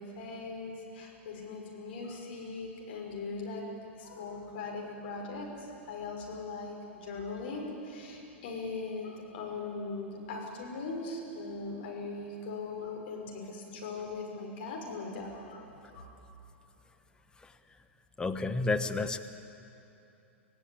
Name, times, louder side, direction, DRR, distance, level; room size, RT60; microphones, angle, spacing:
voice 1, 0.0-3.6 3.9-15.6 15.9-16.1, left 3 dB, 55° left, 0 dB, 6.1 m, -40 dB
voice 2, 18.2-19.2, left 3 dB, 10° left, 8 dB, 1.3 m, -31 dB
26.5 x 17.0 x 8.9 m, 2.8 s
figure-of-eight pair, 100°, 7 cm